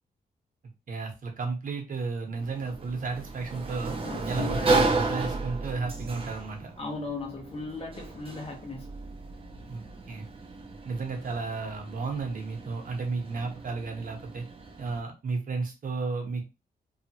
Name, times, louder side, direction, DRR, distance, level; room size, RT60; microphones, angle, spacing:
voice 1, 0.9-4.0 4.3-6.7 9.7-10.3 10.8-14.4 14.8-16.4, right 4 dB, 60° right, 1.0 m, -33 dB
Sliding door, 2.4-15.0, right 3 dB, 35° right, 0.6 m, -33 dB
voice 2, 4.1-4.7 6.8-8.9, left 3 dB, 35° left, 1.0 m, -37 dB
2.8 x 2.3 x 2.8 m
wide cardioid pair, 120°, 16 cm